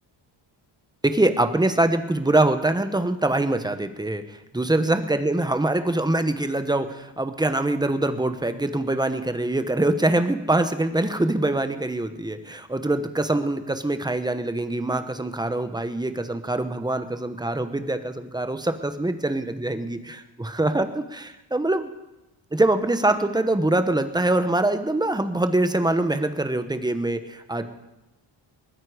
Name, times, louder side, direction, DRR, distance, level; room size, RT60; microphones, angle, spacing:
voice 1, 1.0-21.9 22.5-27.7, right 2 dB, 10° right, 9 dB, 1.1 m, -24 dB
21.0 x 9.8 x 5.1 m, 0.98 s
cardioid pair, 110°, 45 cm